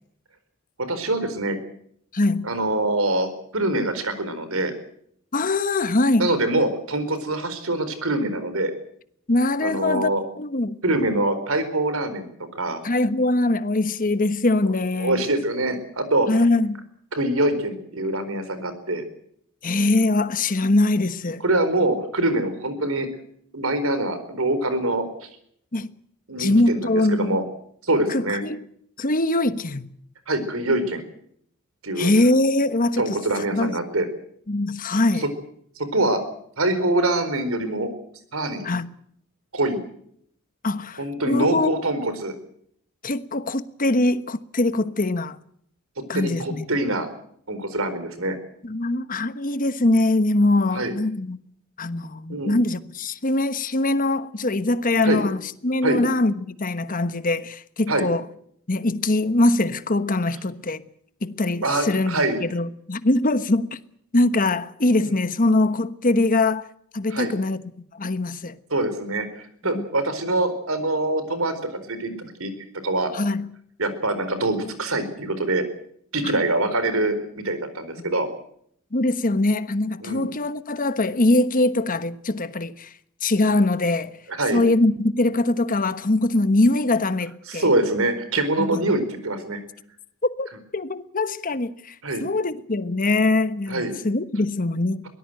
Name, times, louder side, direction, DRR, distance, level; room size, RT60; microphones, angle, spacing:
voice 1, 0.9-1.6 2.4-4.7 6.2-8.7 9.6-10.2 10.8-12.3 12.5-12.8 15.0-16.4 17.1-19.0 21.4-23.1 23.5-25.3 26.3-27.4 27.8-28.4 30.3-31.0 31.8-32.1 33.0-34.1 35.8-36.2 36.6-37.9 38.3-38.7 39.5-39.8 41.0-42.3 46.1-47.1 47.5-48.4 50.7-50.9 52.3-52.6 55.0-55.2 55.8-56.0 57.9-58.1 61.6-62.4 65.0-65.2 67.1-67.3 68.7-72.5 72.8-73.1 73.8-75.7 76.1-78.3 80.0-80.3 84.4-84.6 87.5-89.6 92.0-92.2 93.7-93.9, right 2 dB, 75° right, 4.3 m, -24 dB
voice 2, 2.1-2.5 5.3-6.3 9.3-10.1 10.4-10.8 12.8-15.2 16.3-16.9 19.6-21.4 25.7-25.9 26.4-27.4 28.1-28.6 29.0-29.9 32.0-33.7 34.5-35.3 38.6-38.9 40.6-41.7 43.0-45.4 46.1-46.6 48.6-51.4 51.8-58.2 58.7-60.8 61.2-63.8 64.1-66.7 66.9-67.6 67.9-68.6 69.6-69.9 73.1-73.5 78.9-82.9 83.2-84.1 84.5-87.7 88.6-88.8 90.4-90.5 90.7-91.9 92.2-95.1, left 2 dB, 40° left, 1.2 m, -22 dB
23.5 x 18.0 x 7.8 m
head